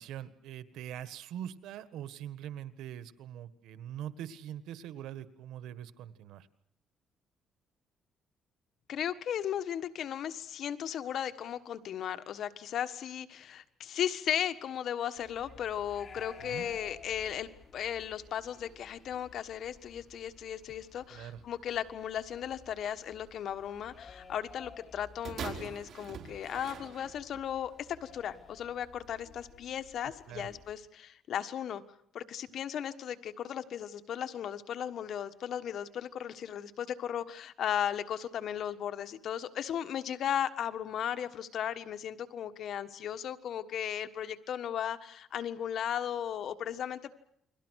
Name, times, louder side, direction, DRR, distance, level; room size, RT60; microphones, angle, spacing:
voice 1, 0.0-6.5 16.4-16.8 21.1-21.4 30.3-30.5, right 10 dB, 90° right, 13 dB, 1.6 m, -43 dB
voice 2, 8.9-31.8 32.1-47.1, left 9 dB, 60° left, 10 dB, 1.5 m, -36 dB
sound 1, 15.2-30.8, left 5 dB, 35° left, 4.3 m, -55 dB
sound 2, 25.2-27.5 28.3-28.4, right 7 dB, 55° right, 4.3 m, -43 dB
29.5 x 23.0 x 6.4 m, 0.70 s
cardioid pair, 130°, 0 cm